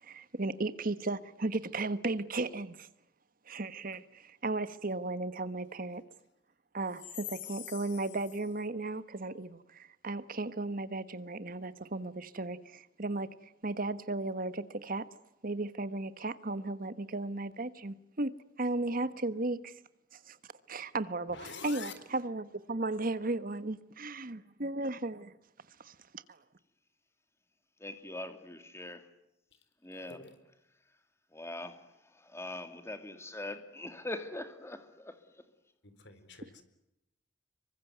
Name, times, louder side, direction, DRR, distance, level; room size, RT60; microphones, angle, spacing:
voice 1, 0.0-2.9 3.5-6.0 6.7-15.1 15.4-19.8 20.1-20.4 20.7-25.3 25.8-26.2, right 2 dB, 50° right, 1.3 m, -35 dB
voice 2, 7.0-8.1 21.3-21.9 29.5-29.6 30.1-30.4 35.8-36.6, left 8 dB, 65° left, 4.4 m, -45 dB
voice 3, 27.8-29.1 29.8-30.2 31.3-35.4, left 2 dB, 15° left, 2.6 m, -42 dB
27.0 x 23.5 x 9.4 m
head